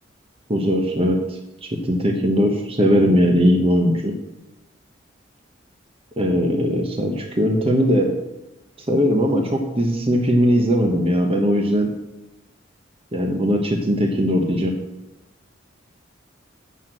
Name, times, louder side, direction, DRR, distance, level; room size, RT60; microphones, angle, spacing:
voice 1, 0.5-4.1 6.2-8.2 8.9-11.9 13.1-14.7, equal, 30° right, 3 dB, 0.9 m, -19 dB
7.2 x 6.0 x 7.5 m, 0.97 s
head